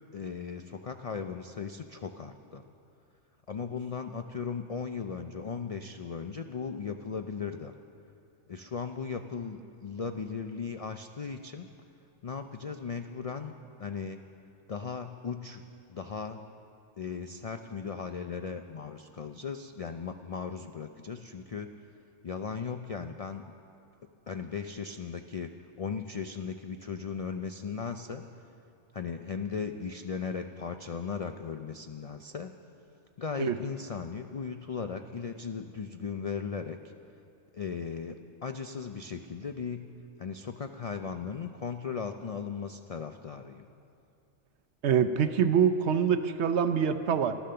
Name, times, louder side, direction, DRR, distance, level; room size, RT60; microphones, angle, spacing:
voice 1, 0.1-2.6 3.5-7.7 8.5-11.7 12.2-14.2 14.7-15.6 15.9-16.4 17.0-21.7 22.2-23.5 24.3-25.5 25.8-28.2 28.9-32.5 33.2-36.8 37.5-39.9 40.2-43.7, left 6 dB, 65° left, 7 dB, 0.3 m, -37 dB
voice 2, 44.8-47.3, right 7 dB, 65° right, 10 dB, 0.9 m, -25 dB
14.0 x 12.5 x 6.7 m, 2.6 s
omnidirectional pair, 1.3 m